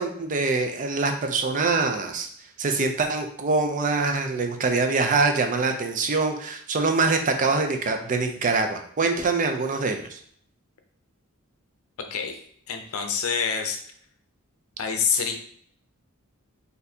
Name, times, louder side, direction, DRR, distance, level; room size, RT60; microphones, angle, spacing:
voice 1, 0.0-2.3 2.6-10.2, right 3 dB, 40° right, 5 dB, 0.4 m, -24 dB
voice 2, 12.1-12.4 12.7-13.8 14.8-15.3, left 6 dB, 80° left, 5 dB, 0.6 m, -26 dB
4.1 x 2.6 x 2.7 m, 0.62 s
head